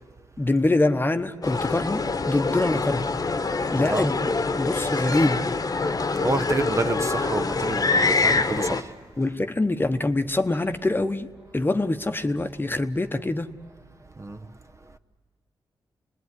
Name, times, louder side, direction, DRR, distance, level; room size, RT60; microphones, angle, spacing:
voice 1, 0.4-3.1 3.7-5.5 9.2-13.5, left 2 dB, 20° left, 1.1 m, -25 dB
sound 1, 1.4-8.8, left 3 dB, 40° left, 1.2 m, -25 dB
voice 2, 6.2-8.9 14.2-14.4, right 3 dB, 30° right, 1.0 m, -28 dB
27.5 x 21.0 x 9.7 m
cardioid pair, 75°, 10 cm